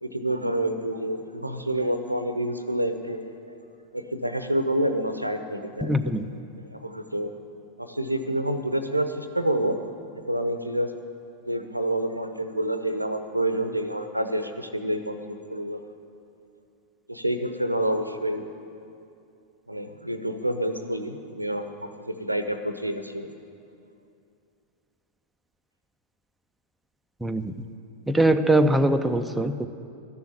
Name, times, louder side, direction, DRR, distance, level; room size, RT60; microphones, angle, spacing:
voice 1, 0.0-3.2 3.5-3.6 3.9-6.1 6.6-7.3 7.8-9.8 10.1-10.9 11.5-15.8 17.1-18.4 19.7-23.3, right 1 dB, 85° right, 9 dB, 0.7 m, -28 dB
voice 2, 5.8-6.3 27.2-27.5 28.1-29.7, right 1 dB, 5° right, 7 dB, 0.5 m, -22 dB
12.5 x 7.0 x 9.7 m, 2.6 s
figure-of-eight pair, 90°, 0 cm